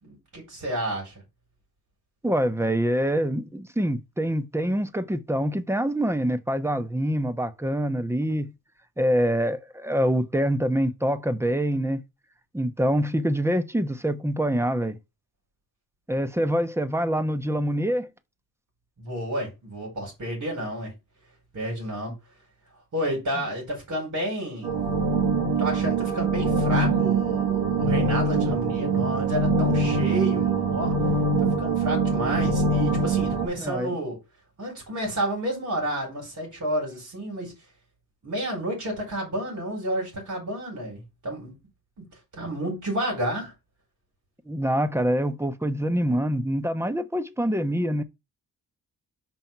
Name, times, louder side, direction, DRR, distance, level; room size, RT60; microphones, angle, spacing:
voice 1, 0.0-1.2 19.0-20.9 21.5-22.2 22.9-24.8 25.6-30.9 31.4-34.2 34.6-37.5 38.2-41.5 42.0-42.1 42.3-43.5, right 1 dB, 50° right, 4.6 m, -30 dB
voice 2, 2.2-8.5 9.0-12.0 12.5-15.0 16.1-18.1 33.6-34.0 44.5-48.0, equal, 5° right, 0.9 m, -25 dB
sound 1, 24.6-33.5, right 3 dB, 80° right, 1.7 m, -23 dB
5.4 x 4.6 x 5.5 m
cardioid pair, 80°, 35 cm